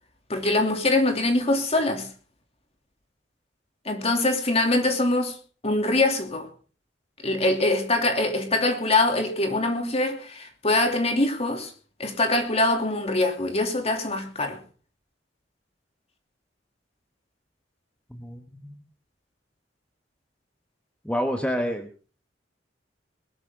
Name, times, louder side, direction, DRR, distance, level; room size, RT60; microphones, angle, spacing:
voice 1, 0.3-2.1 3.8-5.4 5.6-6.5 7.2-11.7 12.0-14.6, left 2 dB, 35° left, 2.8 m, -23 dB
voice 2, 18.1-18.8 21.0-21.9, equal, 5° left, 1.3 m, -28 dB
21.0 x 12.0 x 3.8 m
head